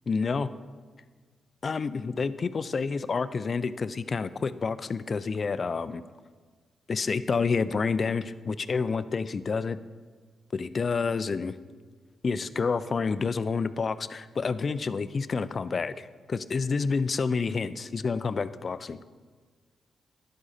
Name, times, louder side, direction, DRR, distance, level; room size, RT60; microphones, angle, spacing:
voice 1, 0.1-0.5 1.6-6.0 6.9-9.8 10.5-11.6 12.2-19.0, left 4 dB, 50° left, 14 dB, 0.5 m, -29 dB
12.0 x 10.0 x 4.2 m, 1.5 s
supercardioid pair, 55°, 0 cm